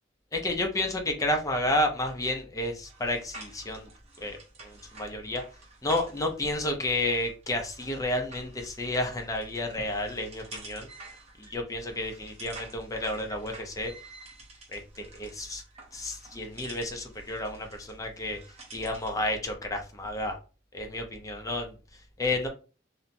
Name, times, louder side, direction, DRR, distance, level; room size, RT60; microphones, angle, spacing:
voice 1, 0.3-3.9 4.2-5.4 5.8-10.9 11.4-13.9 14.7-15.6 15.9-18.4 18.7-20.4 20.7-22.5, left 1 dB, 20° left, 4 dB, 0.5 m, -31 dB
sound 1, 2.8-19.2, right 3 dB, 35° right, 0.7 m, -50 dB
2.8 x 2.1 x 2.5 m, 0.34 s
head